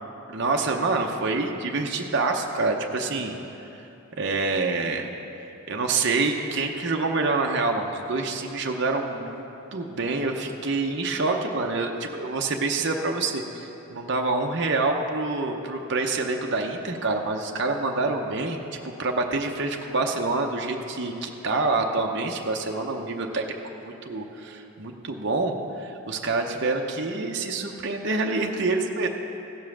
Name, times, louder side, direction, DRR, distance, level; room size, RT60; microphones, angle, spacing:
voice 1, 0.3-3.3 3.8-3.9 4.2-5.1 5.7-9.4 9.7-18.6 18.8-29.1, right 3 dB, 50° right, 2 dB, 0.7 m, -27 dB
16.0 x 5.5 x 6.3 m, 3.0 s
head